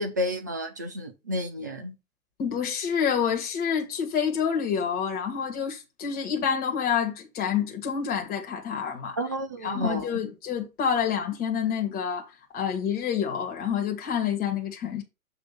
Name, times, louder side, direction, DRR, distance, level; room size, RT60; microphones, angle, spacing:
voice 1, 0.0-1.9 9.2-10.2, equal, 15° right, 0.3 m, -31 dB
voice 2, 2.4-9.2 9.6-12.3 12.5-15.0, left 7 dB, 20° left, 1.8 m, -28 dB
7.0 x 3.2 x 5.9 m
figure-of-eight pair, 120°, 43 cm